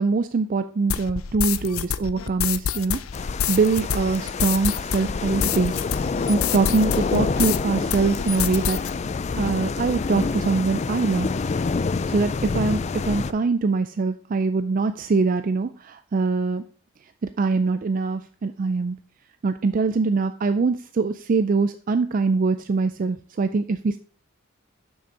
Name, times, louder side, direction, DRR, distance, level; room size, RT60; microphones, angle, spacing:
voice 1, 0.0-3.0 3.5-5.7 6.3-8.8 9.4-11.3 12.1-16.6 17.4-19.0 19.4-24.0, right 4 dB, 40° right, 11 dB, 0.3 m, -23 dB
sound 1, 0.9-7.6 7.9-8.9, left 8 dB, 90° left, 0.5 m, -27 dB
sound 2, 3.1-13.3, left 4 dB, 35° left, 0.3 m, -27 dB
7.1 x 6.0 x 5.3 m, 0.43 s
head